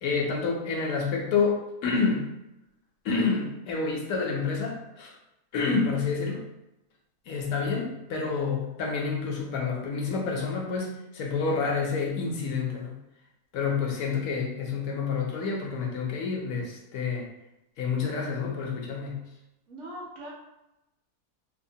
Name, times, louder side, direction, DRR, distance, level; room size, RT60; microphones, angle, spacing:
voice 1, 0.0-2.3 3.0-5.1 5.5-6.5 7.3-13.0 13.5-17.3 17.8-19.3, left 4 dB, 70° left, -1 dB, 1.0 m, -28 dB
voice 2, 19.7-20.3, right 1 dB, 65° right, -3 dB, 0.8 m, -40 dB
2.8 x 2.0 x 2.6 m, 0.92 s
omnidirectional pair, 1.6 m